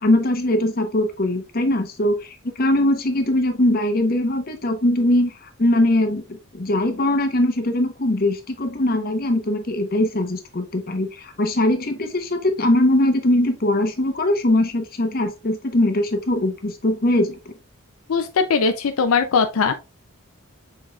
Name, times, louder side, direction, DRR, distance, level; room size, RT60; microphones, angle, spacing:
voice 1, 0.0-5.3 5.6-6.2 6.5-17.4, left 1 dB, 45° left, 0.8 m, -21 dB
voice 2, 18.1-19.7, left 5 dB, 80° left, 0.4 m, -20 dB
6.0 x 3.8 x 2.3 m
head